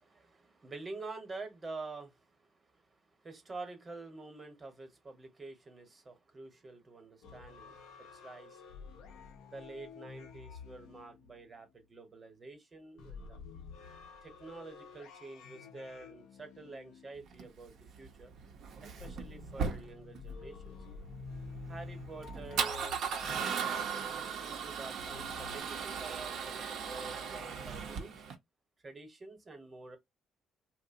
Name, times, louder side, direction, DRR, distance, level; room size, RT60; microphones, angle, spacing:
voice 1, 0.0-8.6 9.4-13.4 14.2-18.3 18.8-20.8 21.7-23.8 24.4-28.2 28.8-30.0, right 3 dB, 35° right, 1.0 m, -48 dB
sound 1, 7.2-11.8 13.0-17.8 19.0-23.6 25.0-25.6, left 5 dB, 80° left, 0.5 m, -50 dB
Male speech man speaking / Car / Engine starting, 17.3-28.3, right 6 dB, 70° right, 0.6 m, -38 dB
2.6 x 2.1 x 2.5 m
supercardioid pair, 60°, 0 cm